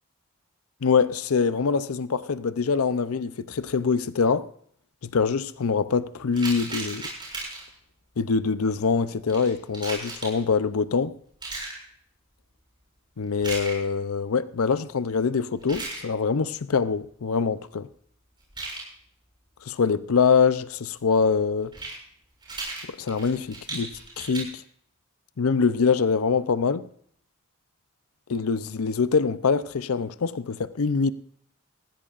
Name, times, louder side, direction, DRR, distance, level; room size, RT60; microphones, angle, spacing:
voice 1, 0.8-4.5 5.0-7.1 8.2-11.1 13.2-17.9 19.7-21.7 23.0-23.9 24.2-24.6 25.4-26.9 28.3-31.1, left 5 dB, 85° left, 0.6 m, -24 dB
sound 1, 6.3-7.8 9.3-10.4 11.4-11.8 13.4-13.8 15.6-16.0 18.4-18.8 21.6-21.9 22.4-24.4, right 3 dB, 20° right, 6.6 m, -35 dB
19.5 x 16.0 x 2.5 m
head